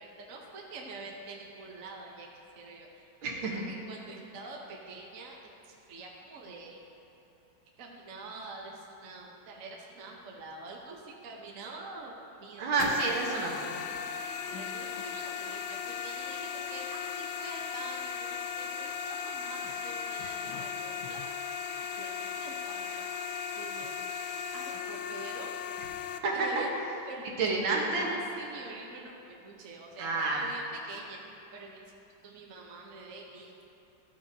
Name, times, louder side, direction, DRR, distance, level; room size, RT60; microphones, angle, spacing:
voice 1, 0.0-2.3 2.6-5.4 5.6-6.8 7.8-12.7 14.5-21.5 22.0-23.1 23.5-25.5 26.3-29.1 29.4-31.8 32.2-33.5, right 3 dB, 55° right, -1 dB, 1.0 m, -46 dB
voice 2, 3.2-3.6 12.6-13.8 26.2-26.6 27.4-28.1 30.0-30.5, right 3 dB, 85° right, -1 dB, 2.0 m, -29 dB
sound 1, 12.8-26.2, left 7 dB, 85° left, 1.3 m, -37 dB
13.5 x 8.4 x 2.7 m, 2.9 s
omnidirectional pair, 2.2 m